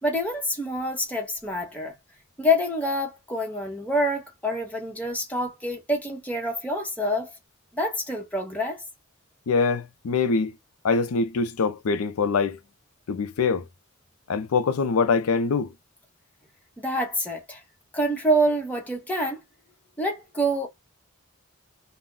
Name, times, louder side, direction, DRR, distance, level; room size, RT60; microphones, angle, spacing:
voice 1, 0.0-1.9 2.4-7.3 7.7-8.8 16.8-17.6 17.9-19.4 20.0-20.7, equal, 5° left, 0.8 m, -26 dB
voice 2, 9.5-10.5 10.8-12.6 13.1-13.7 14.3-15.7, left 4 dB, 80° left, 0.5 m, -24 dB
2.4 x 2.1 x 3.7 m
head